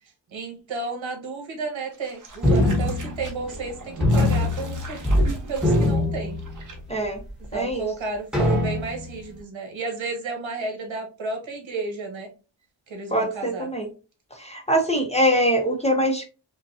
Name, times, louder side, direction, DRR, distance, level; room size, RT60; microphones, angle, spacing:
voice 1, 0.3-6.4 7.4-12.3 12.9-13.7, right 4 dB, 80° right, 2 dB, 1.3 m, -32 dB
sound 1, 1.9-6.8 7.0-7.1, right 2 dB, 40° right, 0.9 m, -37 dB
sound 2, 2.4-3.7 4.0-5.3 5.6-6.9 7.4-7.5 8.3-9.2, left 1 dB, ahead, 1.0 m, -22 dB
voice 2, 6.9-7.2 7.5-7.8 13.1-13.9 14.4-16.2, equal, 15° left, 2 dB, 0.6 m, -23 dB
5.3 x 2.2 x 2.6 m, 0.32 s
wide cardioid pair, 180°, 46 cm